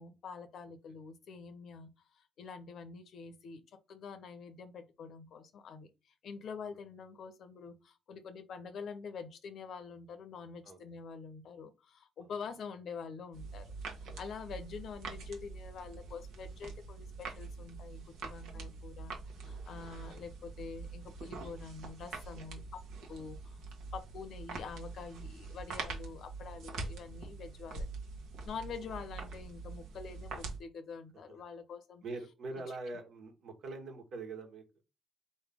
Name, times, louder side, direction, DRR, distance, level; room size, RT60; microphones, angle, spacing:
voice 1, 0.0-19.2 19.4-22.8 23.1-23.6 23.9-27.9 28.4-32.0, left 5 dB, 65° left, 0.8 m, -46 dB
sound 1, 13.3-30.6, right 3 dB, 90° right, 1.2 m, -44 dB
voice 2, 19.7-20.0 22.3-22.6 31.3-31.4 32.0-34.6, right 3 dB, 70° right, 1.5 m, -44 dB
4.4 x 3.2 x 3.5 m
cardioid pair, 90°, 0 cm